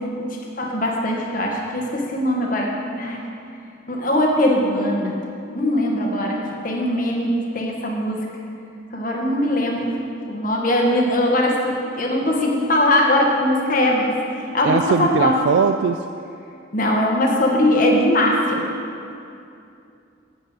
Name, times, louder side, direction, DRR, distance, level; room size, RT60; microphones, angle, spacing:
voice 1, 0.6-3.2 3.9-5.2 5.5-6.4 6.6-8.2 8.9-9.8 10.3-14.1 14.5-15.3 16.7-18.6, left 1 dB, 45° left, 0 dB, 1.5 m, -20 dB
voice 2, 14.6-16.1, right 6 dB, 75° right, 8 dB, 0.3 m, -20 dB
12.0 x 8.2 x 4.8 m, 2.6 s
head